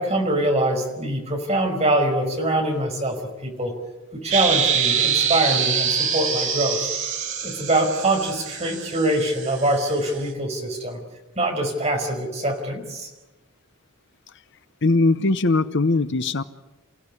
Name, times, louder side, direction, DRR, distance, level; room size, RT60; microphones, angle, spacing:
voice 1, 0.0-3.7 4.1-6.8 7.4-11.0 11.4-13.1, right 1 dB, 30° right, 3 dB, 5.2 m, -24 dB
sound 1, 4.3-10.1, right 7 dB, 60° right, 4.8 m, -25 dB
voice 2, 14.8-16.4, left 3 dB, 55° left, 12 dB, 0.8 m, -20 dB
28.5 x 16.5 x 9.8 m, 1.1 s
head